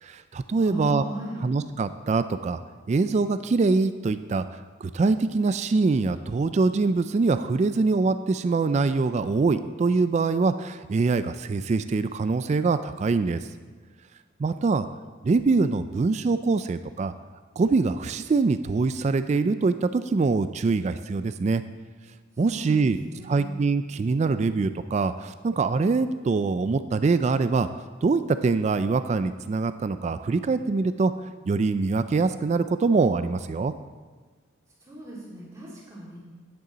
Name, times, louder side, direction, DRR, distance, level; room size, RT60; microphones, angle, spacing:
voice 1, 0.0-1.0 1.4-2.6 2.9-13.4 14.4-14.9 15.2-17.1 17.6-21.6 22.4-27.7 28.0-31.1 31.5-33.7, right 4 dB, 35° right, 12 dB, 0.3 m, -24 dB
voice 2, 0.6-1.5 22.4-23.5 34.8-36.2, right 1 dB, 15° right, -7 dB, 3.1 m, -37 dB
10.5 x 9.2 x 4.0 m, 1.4 s
head